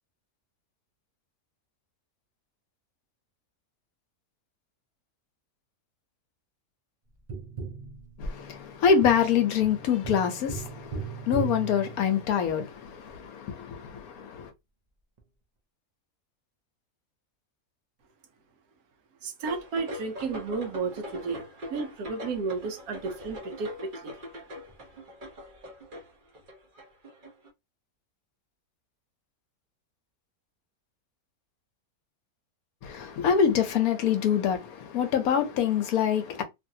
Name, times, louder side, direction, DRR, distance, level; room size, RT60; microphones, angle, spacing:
Tap, 7.3-12.6 15.2-15.3, right 5 dB, 55° right, 0.4 m, -38 dB
voice 1, 8.2-14.5 32.8-36.4, left 7 dB, 75° left, 1.1 m, -25 dB
voice 2, 19.2-21.5 21.7-24.1, right 4 dB, 80° right, 1.2 m, -33 dB
sound 1, 19.4-27.5, left 1 dB, 40° right, 1.0 m, -42 dB
3.0 x 2.6 x 2.6 m
omnidirectional pair, 1.6 m